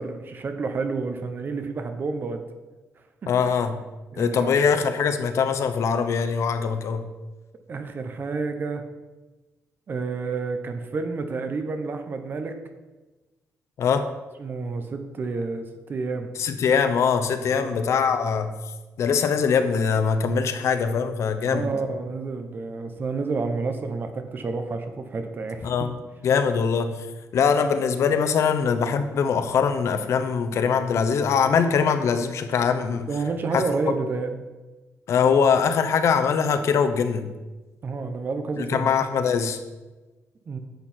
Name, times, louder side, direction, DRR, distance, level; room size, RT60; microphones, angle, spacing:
voice 1, 0.0-2.5 4.1-4.7 7.7-8.8 9.9-12.6 14.4-16.4 17.5-17.7 21.5-25.7 33.1-34.4 37.8-38.9 40.5-40.6, right 4 dB, 40° right, 7 dB, 1.1 m, -30 dB
voice 2, 3.3-3.8 4.2-7.0 13.8-14.1 16.4-18.5 19.0-21.7 25.6-25.9 26.2-26.9 27.3-33.1 33.5-33.6 35.1-37.3 38.6-39.6, left 6 dB, 70° left, 9 dB, 0.9 m, -22 dB
10.5 x 7.7 x 4.5 m, 1.2 s
wide cardioid pair, 145°, 5 cm